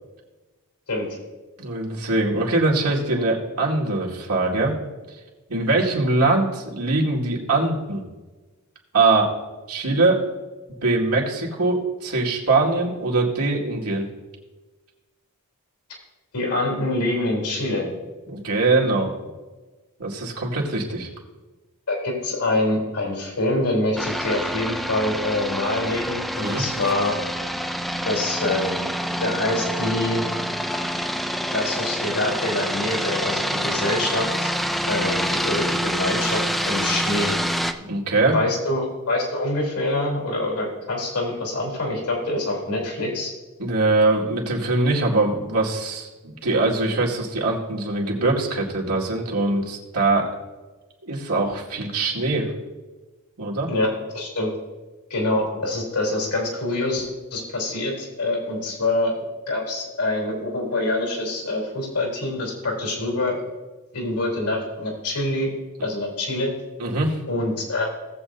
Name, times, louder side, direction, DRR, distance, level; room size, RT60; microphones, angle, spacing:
voice 1, 1.6-4.7 5.1-5.2 5.5-8.0 8.9-9.3 9.7-10.2 10.8-14.1 18.3-19.1 20.0-21.1 26.4-26.6 37.9-38.4 43.6-50.3 51.0-52.5 53.4-53.7 66.8-67.2, right 2 dB, 85° right, -2 dB, 2.1 m, -22 dB
voice 2, 16.3-18.0 21.9-27.2 28.0-28.9 29.2-30.3 31.5-34.5 34.9-37.3 38.3-43.3 53.7-54.5 55.1-59.1 59.5-63.4 63.9-65.5 65.8-66.5 67.3-67.9, left 2 dB, 85° left, -1 dB, 3.6 m, -25 dB
sound 1, 24.0-37.7, equal, ahead, 0.4 m, -27 dB
17.5 x 7.6 x 2.7 m, 1.2 s
head